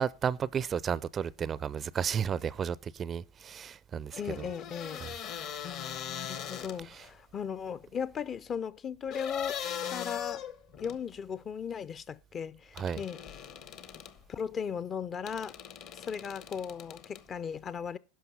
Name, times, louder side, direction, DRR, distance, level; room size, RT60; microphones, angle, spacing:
voice 1, 0.0-4.5 5.0-5.1 6.9-7.0 12.8-13.0, right 7 dB, 30° right, 0.4 m, -33 dB
sound 1, 4.1-7.1 9.1-11.0 12.8-14.2 15.3-17.2, left 9 dB, 50° left, 1.0 m, -40 dB
voice 2, 4.2-5.1 5.6-10.4 10.8-13.2 14.3-15.6 15.9-18.0, left 7 dB, 30° left, 0.5 m, -37 dB
11.0 x 5.7 x 5.4 m
figure-of-eight pair, 80°, 0 cm